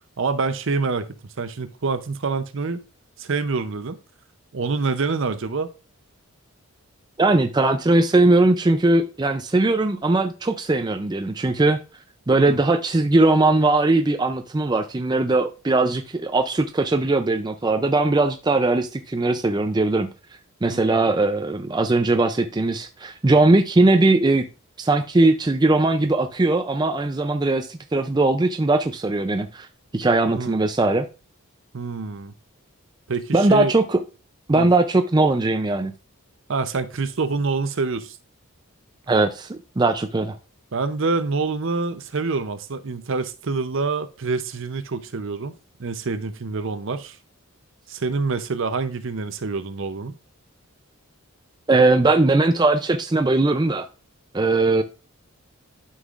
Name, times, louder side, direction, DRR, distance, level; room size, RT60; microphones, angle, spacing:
voice 1, 0.2-1.1 1.4-2.8 3.2-4.0 4.5-5.7 12.4-12.6 20.7-20.8 30.3-30.6 31.7-32.3 33.1-33.7 34.5-34.7 36.5-38.2 40.7-47.2 47.9-50.2, right 4 dB, 55° right, 0.6 m, -26 dB
voice 2, 7.2-11.8 12.3-20.1 20.6-24.5 24.8-29.7 29.9-31.1 33.3-34.0 34.5-35.9 39.1-40.3 51.7-53.9 54.3-54.8, right 2 dB, 20° right, 0.4 m, -19 dB
11.5 x 5.6 x 2.4 m
head